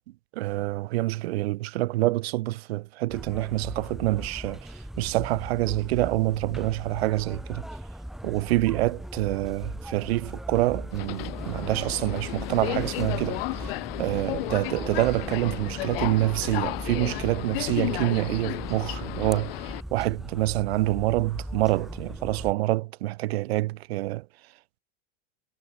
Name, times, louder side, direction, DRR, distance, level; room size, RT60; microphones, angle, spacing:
voice 1, 0.3-7.6 8.2-24.2, right 18 dB, 90° right, 1.0 m, -27 dB
sound 1, 3.1-22.5, right 1 dB, ahead, 2.1 m, -39 dB
Subway metro underground, 10.9-19.8, left 23 dB, 70° left, 0.4 m, -33 dB
supercardioid pair, 165°, 30 cm